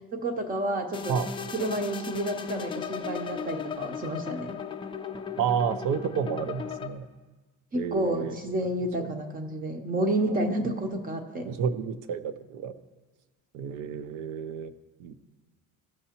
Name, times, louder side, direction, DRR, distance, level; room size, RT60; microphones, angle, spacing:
voice 1, 0.1-1.2 1.5-4.5 7.7-11.5, right 1 dB, 25° right, 5 dB, 0.7 m, -30 dB
sound 1, 0.9-6.9, left 6 dB, 15° left, 0.4 m, -36 dB
voice 2, 5.4-7.1 7.7-8.4 9.0-9.1 10.3-10.4 11.4-12.7 13.5-14.7 15.0-15.2, right 7 dB, 70° right, 11 dB, 0.6 m, -30 dB
15.0 x 6.5 x 2.9 m, 1.2 s
cardioid pair, 155°, 32 cm